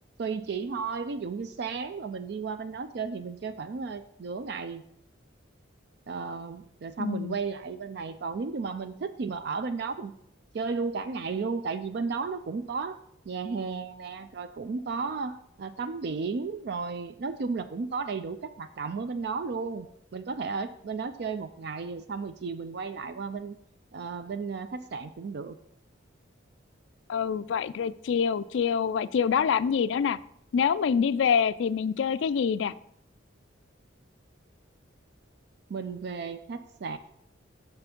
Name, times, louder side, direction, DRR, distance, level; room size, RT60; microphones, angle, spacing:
voice 1, 0.2-4.8 6.1-10.1 10.5-13.0 13.3-23.6 23.9-25.6 35.7-37.0, right 4 dB, 55° right, 10 dB, 0.4 m, -34 dB
voice 2, 7.0-7.4 27.1-30.2 30.5-32.7, left 7 dB, 65° left, 16 dB, 0.3 m, -26 dB
6.9 x 5.7 x 5.2 m, 0.71 s
head